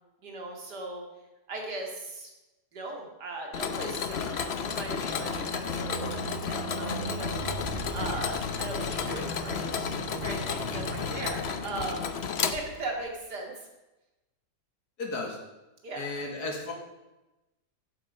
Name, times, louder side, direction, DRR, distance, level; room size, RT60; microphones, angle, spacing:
voice 1, 0.2-1.0 1.5-2.3 2.7-7.6 7.9-9.9 10.2-12.1 12.4-13.7 15.8-16.1, right 2 dB, 80° right, 1 dB, 2.8 m, -38 dB
Mechanisms, 3.5-13.1, left 6 dB, 50° left, 0.9 m, -33 dB
sound 1, 3.9-12.7, right 2 dB, 40° right, 1.2 m, -40 dB
voice 2, 15.0-15.4 16.0-16.7, left 3 dB, 70° left, 1 dB, 2.6 m, -34 dB
14.0 x 8.1 x 5.4 m, 1.0 s
omnidirectional pair, 1.8 m